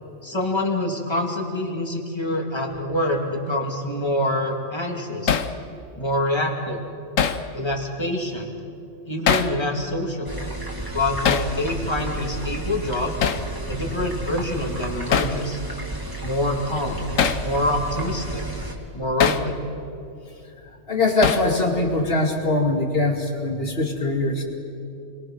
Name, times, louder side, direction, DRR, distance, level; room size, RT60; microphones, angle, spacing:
voice 1, 0.2-5.4 6.0-6.8 7.5-8.5 9.1-10.4 10.9-13.1 13.7-15.6 16.2-17.0 17.4-18.4 18.9-19.6, left 1 dB, 20° left, 1 dB, 2.6 m, -26 dB
Hammer, 5.3-5.5 7.2-7.4 9.3-9.6 11.2-11.5 13.2-13.5 15.1-15.4 17.2-17.5 19.2-19.5 21.2-21.5, left 7 dB, 75° left, 1.3 m, -21 dB
sound 1, 10.3-18.8, right 2 dB, 15° right, 2.6 m, -32 dB
voice 2, 20.9-24.4, left 2 dB, 45° left, 2 dB, 2.7 m, -22 dB
29.5 x 23.0 x 6.3 m, 2.7 s
omnidirectional pair, 1.3 m